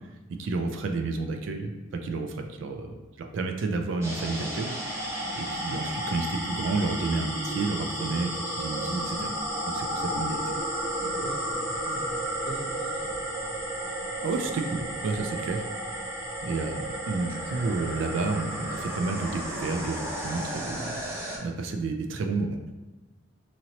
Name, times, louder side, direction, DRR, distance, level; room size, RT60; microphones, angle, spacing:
voice 1, 0.4-1.7 2.0-4.8 5.3-9.3 9.7-10.5 14.2-15.6 16.4-21.0 21.4-22.6, right 3 dB, 70° right, 5 dB, 0.3 m, -30 dB
sound 1, 4.0-21.4, right 1 dB, 15° right, 0.6 m, -33 dB
voice 2, 5.7-6.2 11.0-13.1, right 1 dB, 30° left, -6 dB, 0.8 m, -42 dB
2.8 x 2.8 x 2.8 m, 1.2 s
head